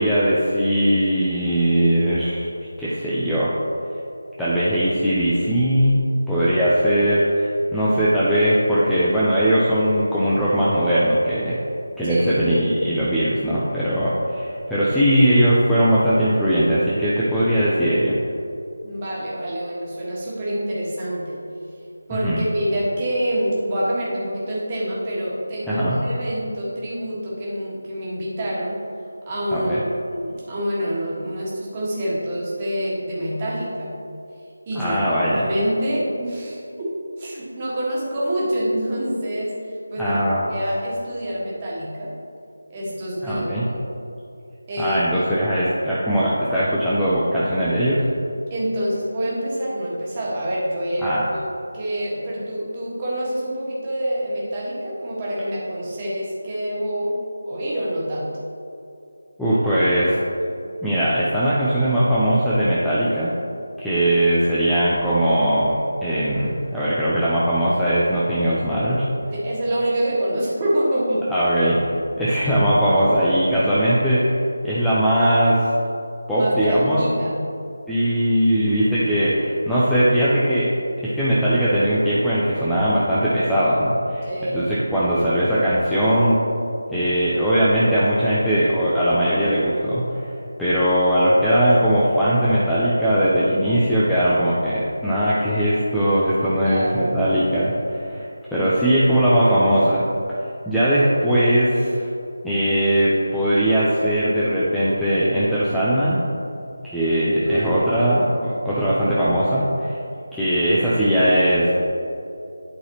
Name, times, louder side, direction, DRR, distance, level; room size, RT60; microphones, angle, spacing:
voice 1, 0.0-2.5 2.8-3.5 4.4-6.0 6.3-11.6 12.0-18.2 22.2-22.4 25.7-26.0 29.5-29.8 34.8-35.5 40.0-40.5 43.2-43.6 44.8-48.0 51.0-51.2 59.4-60.2 60.8-63.3 63.8-69.0 71.3-71.8 72.2-74.2 74.6-75.6 76.3-77.0 77.9-80.7 81.0-86.4 86.9-90.3 90.6-100.0 100.7-102.1 102.4-106.2 106.9-110.0 110.3-111.7, equal, 5° left, -12 dB, 0.5 m, -19 dB
voice 2, 12.0-12.5 18.8-21.4 22.1-28.8 29.3-33.9 34.7-40.2 40.5-42.1 42.7-43.5 44.7-45.0 48.5-57.2 57.5-58.4 69.3-71.3 76.3-77.4 84.2-84.6 96.6-97.2 107.4-108.1 108.7-108.8, equal, 20° right, -7 dB, 1.5 m, -26 dB
11.0 x 4.0 x 2.9 m, 2.7 s
figure-of-eight pair, 160°, 0 cm